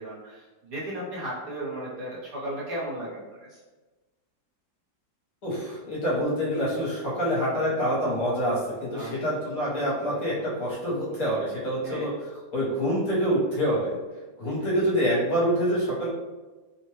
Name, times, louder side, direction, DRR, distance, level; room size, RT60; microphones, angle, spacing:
voice 1, 0.0-3.6 8.9-9.3 11.8-12.1 14.6-14.7, right 1 dB, 60° right, -7 dB, 1.3 m, -35 dB
voice 2, 5.4-12.1 12.5-13.9 14.4-16.1, equal, 60° left, -7 dB, 1.3 m, -26 dB
3.1 x 2.1 x 3.1 m, 1.2 s
omnidirectional pair, 1.8 m